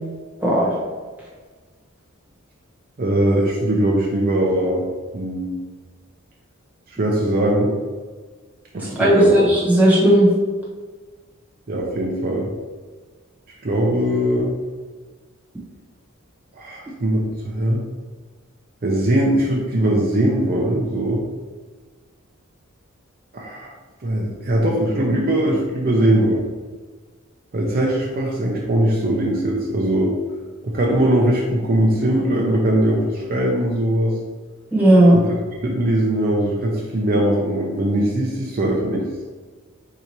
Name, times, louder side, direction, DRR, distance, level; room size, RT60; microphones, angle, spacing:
voice 1, 0.4-0.8 9.0-10.3 34.7-35.2, right 1 dB, 10° right, -6 dB, 1.1 m, -14 dB
voice 2, 3.0-4.8 5.1-5.6 6.9-7.7 8.7-9.5 11.7-12.5 13.6-14.6 16.6-17.9 18.8-21.2 23.3-23.7 24.0-26.4 27.5-30.1 30.6-34.1 35.1-39.0, right 1 dB, 45° right, -2 dB, 0.5 m, -20 dB
3.8 x 2.8 x 4.5 m, 1.4 s
head